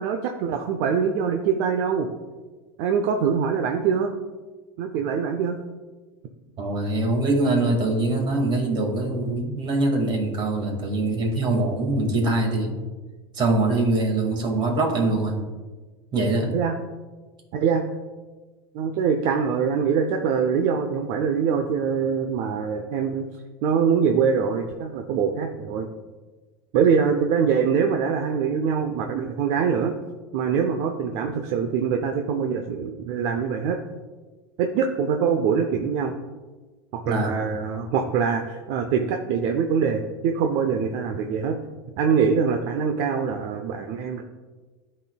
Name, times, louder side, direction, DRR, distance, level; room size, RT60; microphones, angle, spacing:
voice 1, 0.0-2.1 2.8-4.2 4.8-5.6 16.5-16.7 17.5-17.8 18.7-23.3 23.6-25.9 26.7-30.0 30.3-33.8 34.6-36.1 36.9-41.6 42.0-44.2, right 6 dB, 60° right, 5 dB, 0.6 m, -23 dB
voice 2, 6.6-12.8 13.3-15.4 16.1-16.5 37.1-37.3, right 2 dB, 35° right, 2 dB, 2.0 m, -23 dB
12.0 x 4.3 x 2.3 m, 1.3 s
supercardioid pair, 110°, 13 cm